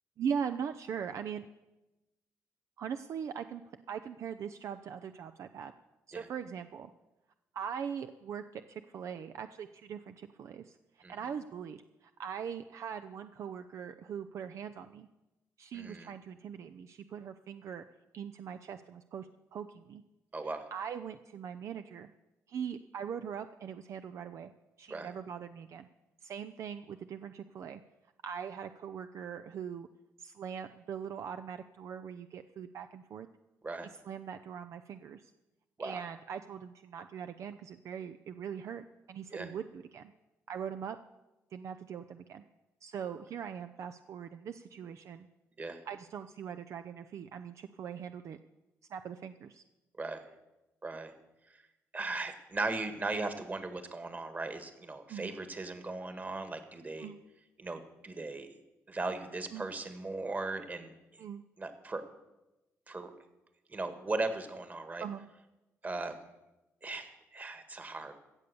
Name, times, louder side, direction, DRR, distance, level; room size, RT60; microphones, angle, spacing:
voice 1, 0.2-1.4 2.8-3.6 3.9-5.7 6.1-6.9 7.5-15.1 15.6-17.8 18.1-20.0 20.4-22.1 22.5-24.5 24.8-25.9 26.2-27.8 28.2-29.9 30.2-33.3 33.8-35.3 35.8-40.1 40.5-41.0 41.5-42.4 42.8-45.3 45.9-48.4 48.9-49.6 55.1-55.3 57.0-57.2 59.5-59.7 61.2-61.4 65.0-65.2, right 7 dB, 65° right, 9 dB, 0.5 m, -41 dB
voice 2, 15.7-16.1 20.3-20.7 24.9-25.1 33.6-33.9 35.8-36.0 39.3-39.5 45.6-45.8 50.0-50.2 50.8-51.1 51.5-51.6 51.9-57.1 57.6-58.5 58.9-60.9 61.6-62.0 62.9-63.1 63.7-65.0 65.8-66.2 66.8-68.1, right 3 dB, 30° right, 9 dB, 1.7 m, -38 dB
16.5 x 7.0 x 6.8 m, 1.0 s
cardioid pair, 85°, 6 cm